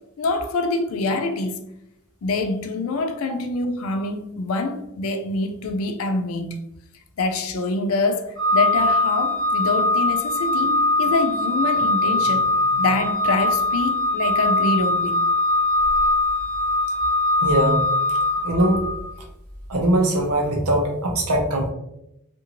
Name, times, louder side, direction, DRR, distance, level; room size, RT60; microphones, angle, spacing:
voice 1, 0.2-1.7 2.2-6.6 7.2-15.2, left 3 dB, 65° left, 0.4 m, -25 dB
Organ, 8.4-19.1, left 2 dB, 70° right, 1.0 m, -21 dB
voice 2, 17.4-17.9 18.4-18.8 19.7-21.7, right 1 dB, 85° right, 0.7 m, -21 dB
2.6 x 2.5 x 2.8 m
head